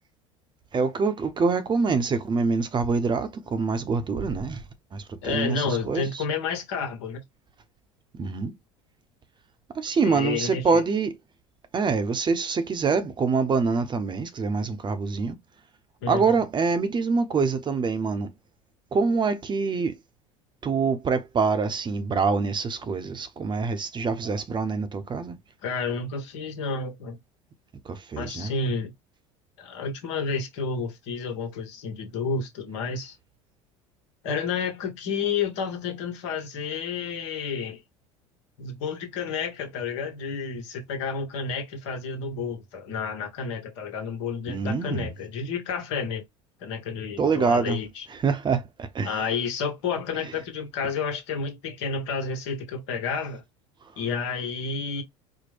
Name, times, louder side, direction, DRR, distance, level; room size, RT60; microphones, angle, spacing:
voice 1, 0.7-4.6 4.9-6.2 8.1-8.5 9.7-11.2 11.7-15.4 16.1-18.3 18.9-20.0 20.6-25.4 27.8-28.5 44.5-45.1 47.2-47.8 48.1-49.2, right 4 dB, 30° right, 0.8 m, -25 dB
voice 2, 5.2-7.2 10.0-10.8 16.0-16.4 25.6-27.2 28.2-28.9 29.6-33.1 34.2-37.8 38.6-46.2 46.6-48.0 49.0-53.4 54.0-55.0, left 5 dB, 70° left, 1.3 m, -30 dB
4.4 x 2.1 x 3.3 m
hypercardioid pair, 75°, 16 cm